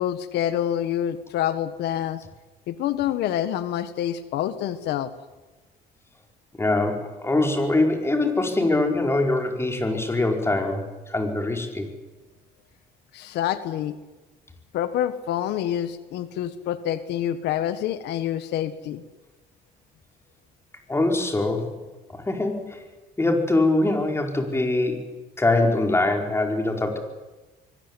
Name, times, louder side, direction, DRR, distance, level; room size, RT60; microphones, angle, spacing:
voice 1, 0.0-2.2 2.7-5.1 13.1-13.9 14.7-19.0, left 11 dB, 80° left, 12 dB, 1.6 m, -27 dB
voice 2, 6.6-11.9 20.9-21.7 22.1-22.8 23.2-25.0 25.4-27.0, left 2 dB, 15° left, 3 dB, 5.1 m, -23 dB
25.0 x 22.0 x 10.0 m, 1.2 s
cardioid pair, 110°, 17 cm